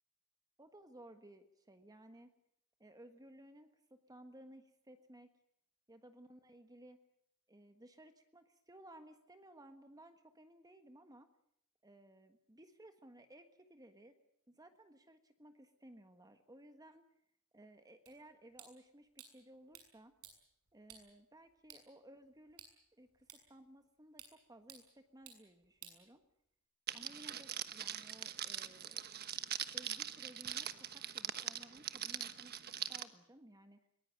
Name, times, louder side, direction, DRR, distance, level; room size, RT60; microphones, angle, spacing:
voice 1, 0.6-2.3 2.8-5.3 5.9-7.0 7.5-11.3 11.8-14.2 14.5-17.0 17.5-20.1 20.7-22.6 23.0-26.2 26.9-29.1 29.6-33.8, right 1 dB, 15° right, 8 dB, 1.4 m, -58 dB
sound 1, 18.1-26.7, right 8 dB, 90° right, 7.0 m, -61 dB
Crackle, 26.9-33.0, right 10 dB, 45° right, 1.2 m, -42 dB
23.0 x 20.0 x 9.1 m, 0.71 s
head